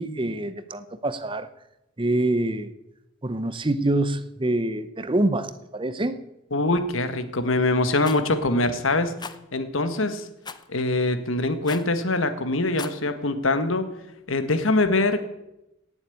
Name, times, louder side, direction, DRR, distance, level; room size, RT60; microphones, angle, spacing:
voice 1, 0.0-1.5 2.0-2.7 3.2-6.2, right 1 dB, 25° right, 12 dB, 0.8 m, -25 dB
voice 2, 6.5-9.1 9.5-10.3 10.7-13.9 14.3-15.3, left 2 dB, 80° left, 10 dB, 1.5 m, -23 dB
Rattle, 8.0-8.2 9.2-9.4 10.4-10.7 11.6-11.9 12.6-13.0, left 5 dB, 20° left, 0.7 m, -37 dB
17.5 x 7.2 x 8.5 m, 0.91 s
head